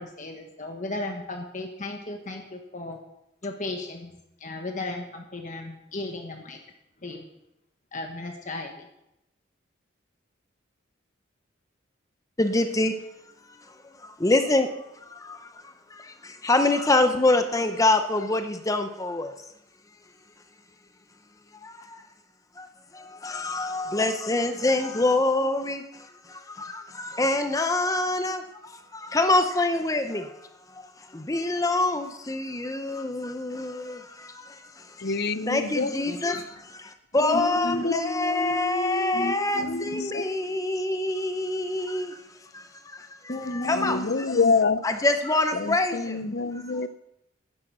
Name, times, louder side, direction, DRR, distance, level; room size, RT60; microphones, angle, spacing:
voice 1, 0.0-3.0 3.4-4.1 4.4-6.6 7.0-7.2 7.9-8.9 36.1-36.4 37.3-37.8 39.1-40.2 43.3-44.1 44.3-44.5 46.2-46.4, left 1 dB, 40° left, 3 dB, 1.3 m, -35 dB
voice 2, 12.4-12.9 14.2-14.7 14.9-19.3 21.6-22.0 22.6-22.7 22.9-30.4 31.1-35.1 35.4-42.2 42.5-42.6 42.9-44.0 44.8-46.2, left 2 dB, 15° left, 7 dB, 0.7 m, -26 dB
voice 3, 35.0-36.0 37.2-39.8 40.1-40.2 43.7-44.8 45.5-46.9, left 4 dB, 55° left, 14 dB, 0.6 m, -27 dB
12.0 x 9.9 x 6.1 m, 0.86 s
head